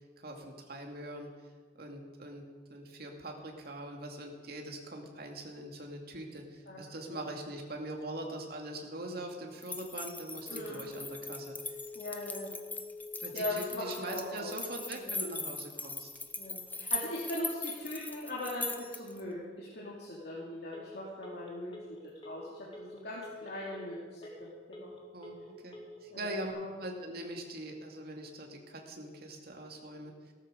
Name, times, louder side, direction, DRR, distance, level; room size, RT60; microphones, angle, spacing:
voice 1, 0.2-1.3 1.8-11.8 13.2-16.1 25.1-25.3 25.6-30.3, right 1 dB, 60° right, 1 dB, 2.4 m, -42 dB
sound 1, 9.6-19.2, left 3 dB, 10° left, 0.9 m, -40 dB
voice 2, 10.5-10.9 11.9-12.7 13.3-14.5 14.9-15.2 16.4-21.7 22.2-24.3 24.7-24.9 26.1-26.7, left 1 dB, 65° left, -6 dB, 2.8 m, -40 dB
Telephone, 10.5-26.5, left 2 dB, 30° left, 2.5 m, -50 dB
17.5 x 13.5 x 5.3 m, 1.5 s
head